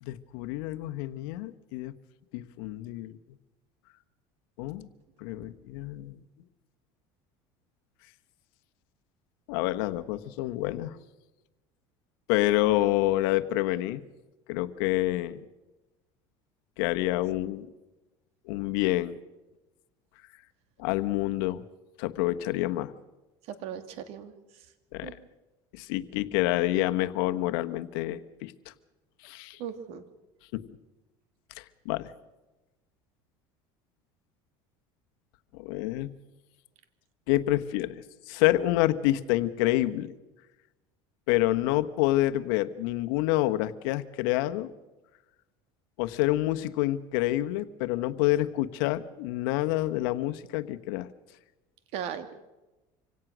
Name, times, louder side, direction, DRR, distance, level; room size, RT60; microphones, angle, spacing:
voice 1, 0.0-1.9 2.3-3.2 4.6-4.9 5.2-6.2 9.5-11.0 12.3-14.0 14.5-15.4 16.8-17.7 18.5-19.2 20.8-21.6 22.0-22.9 24.9-25.2 25.7-28.5 29.2-29.6 30.5-30.6 31.8-32.1 35.5-36.1 37.3-40.1 41.3-44.7 46.0-51.1, left 16 dB, 80° left, 11 dB, 1.2 m, -28 dB
voice 2, 23.5-24.3 25.0-25.1 29.6-30.0 51.9-52.4, right 8 dB, 65° right, 10 dB, 2.3 m, -37 dB
25.5 x 17.5 x 6.2 m, 1.1 s
supercardioid pair, 115°, 12 cm